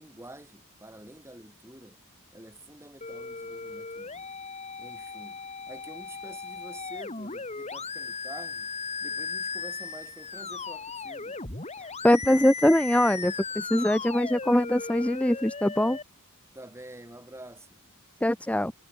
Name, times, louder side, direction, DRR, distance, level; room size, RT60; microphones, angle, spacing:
voice 1, 0.0-2.0 2.3-4.3 4.8-8.7 9.0-11.4 16.5-17.8, right 1 dB, 10° right, 6.9 m, -48 dB
sound 1, 3.0-16.0, left 4 dB, 30° left, 3.8 m, -37 dB
voice 2, 12.0-16.0 18.2-18.7, left 1 dB, 5° left, 0.9 m, -23 dB
head